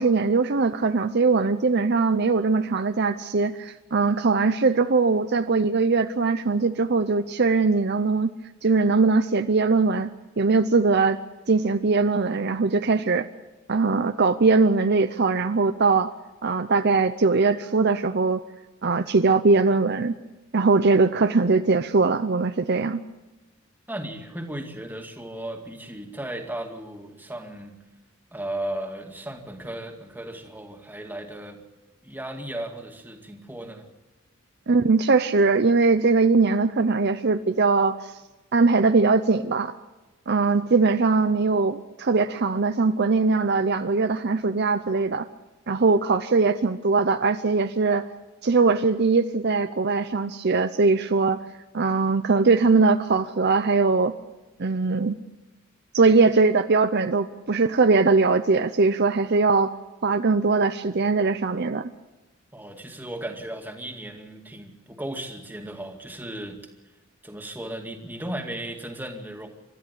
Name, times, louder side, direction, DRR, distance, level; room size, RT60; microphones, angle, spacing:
voice 1, 0.0-8.3 8.6-10.1 10.4-11.2 11.5-13.3 13.7-16.1 16.4-18.4 18.8-20.2 20.5-23.0 34.7-38.1 38.5-39.7 40.3-45.3 45.7-48.0 48.4-51.4 51.7-54.1 54.6-55.2 55.9-59.7 60.0-61.9, right 4 dB, 50° right, 9 dB, 0.7 m, -21 dB
voice 2, 23.9-27.8 28.3-31.6 32.0-33.9 62.5-66.6 67.2-69.5, right 1 dB, 10° right, 3 dB, 2.3 m, -35 dB
29.5 x 13.5 x 8.4 m, 1.1 s
head